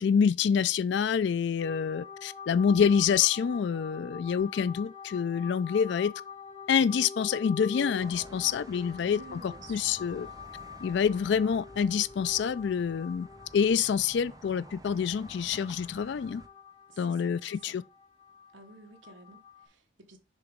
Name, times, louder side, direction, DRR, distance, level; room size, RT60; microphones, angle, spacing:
voice 1, 0.0-6.1 6.7-10.3 10.8-13.3 13.5-16.4 17.0-17.8, left 7 dB, 55° left, 0.3 m, -27 dB
sound 1, 1.6-19.7, left 6 dB, 25° left, 1.5 m, -46 dB
sound 2, 8.0-16.5, right 2 dB, 20° right, 0.5 m, -51 dB
voice 2, 9.0-9.9 16.9-17.8 18.5-20.2, right 3 dB, 65° right, 1.1 m, -51 dB
6.7 x 3.0 x 5.0 m
head